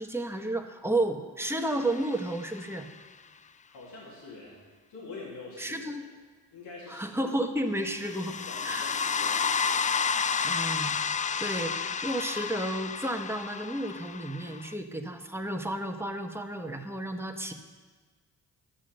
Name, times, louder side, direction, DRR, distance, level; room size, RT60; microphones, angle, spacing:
voice 1, 0.0-2.9 5.6-6.1 6.9-8.4 8.6-8.9 10.4-11.0 11.4-17.5, right 1 dB, 5° right, 4 dB, 1.4 m, -32 dB
sound 1, 1.7-2.7 8.0-14.7, left 6 dB, 20° left, 0.3 m, -31 dB
voice 2, 3.7-4.6 4.9-5.9 6.5-7.2 8.5-9.4, left 3 dB, 90° left, -5 dB, 2.8 m, -45 dB
11.5 x 7.2 x 6.6 m, 1.4 s
supercardioid pair, 55°, 41 cm